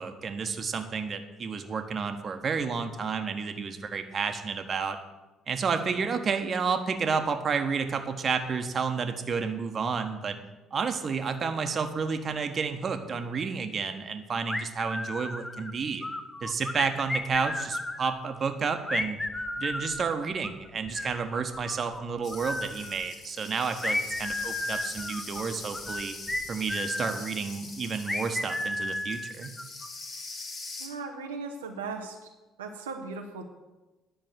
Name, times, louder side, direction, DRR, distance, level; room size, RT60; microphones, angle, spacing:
voice 1, 0.0-5.0 5.5-10.4 10.7-16.0 16.4-19.2 19.6-26.1 26.5-29.5, right 5 dB, 40° right, 7 dB, 1.3 m, -31 dB
sound 1, 14.5-15.7 16.0-18.1 18.9-22.0 22.3-23.0 23.8-27.2 28.1-29.9, left 1 dB, 15° left, 1.1 m, -33 dB
sound 2, 22.2-30.9, left 3 dB, 50° left, 2.5 m, -43 dB
voice 2, 30.7-32.3 32.6-33.4, right 4 dB, 85° right, 2 dB, 0.9 m, -37 dB
10.5 x 6.2 x 7.9 m, 1.1 s
figure-of-eight pair, 50°, 0 cm